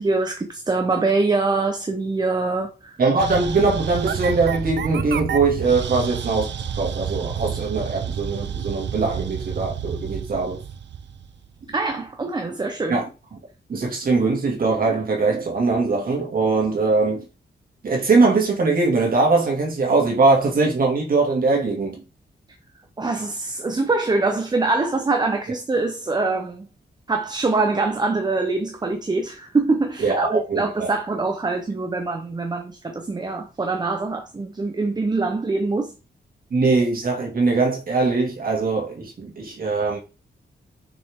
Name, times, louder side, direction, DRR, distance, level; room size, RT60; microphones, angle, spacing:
voice 1, 0.0-3.0 11.7-13.0 23.0-26.7 27.1-35.9, right 3 dB, 25° right, 0.9 m, -24 dB
voice 2, 3.0-6.5 6.8-10.6 12.9-13.4 13.7-17.2 17.8-22.0 30.0-30.9 36.5-40.0, right 3 dB, 55° right, 2.4 m, -21 dB
sound 1, 3.2-11.7, right 8 dB, 90° right, 0.7 m, -29 dB
6.8 x 6.0 x 3.6 m
wide cardioid pair, 165°, 18 cm